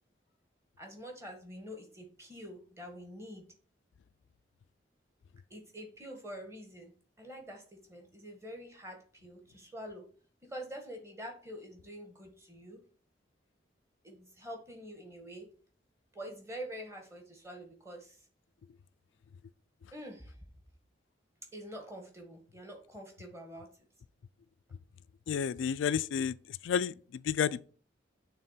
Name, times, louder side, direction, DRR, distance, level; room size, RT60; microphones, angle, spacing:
voice 1, 0.8-3.4 5.5-6.9 7.2-10.0 10.5-12.8 14.0-15.5 16.1-18.3 19.9-20.4 21.5-23.7, equal, 15° right, 1.5 m, -46 dB
voice 2, 25.3-26.3 26.6-26.9 27.3-27.6, left 7 dB, 90° left, 0.3 m, -30 dB
6.6 x 3.5 x 5.6 m
head